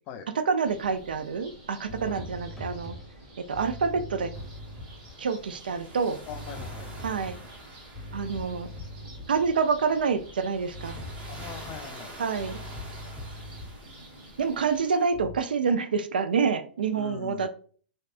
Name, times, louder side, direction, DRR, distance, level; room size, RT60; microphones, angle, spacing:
voice 1, 0.5-3.0 3.4-4.3 5.2-6.2 7.0-7.4 8.1-8.7 9.3-11.0 12.2-12.6 14.4-17.5, right 5 dB, 75° right, 10 dB, 0.3 m, -27 dB
sound 1, 0.6-14.8, right 1 dB, 45° right, 1.2 m, -49 dB
sound 2, 0.8-1.0 1.9-5.4 6.3-9.6 10.7-14.0 15.1-15.4, left 1 dB, 5° left, 0.9 m, -42 dB
sound 3, 4.3-15.0, right 1 dB, 30° right, 1.1 m, -48 dB
voice 2, 6.3-7.0 11.3-12.2 16.9-17.5, left 8 dB, 35° left, 9 dB, 0.3 m, -41 dB
3.2 x 2.7 x 2.4 m, 0.44 s
figure-of-eight pair, 105°, 5 cm